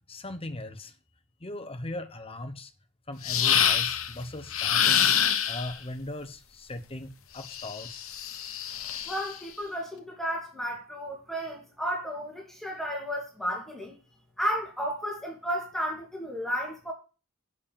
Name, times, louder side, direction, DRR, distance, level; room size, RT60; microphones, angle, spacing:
voice 1, 0.1-0.9 1.4-2.7 3.1-5.1 5.5-8.0, left 1 dB, 25° left, 1.2 m, -38 dB
sound 1, 3.2-4.1 4.5-5.7 7.4-9.3, left 9 dB, 65° left, 1.2 m, -26 dB
voice 2, 9.1-13.9 14.4-16.9, equal, ahead, 2.8 m, -33 dB
8.2 x 6.9 x 7.2 m
head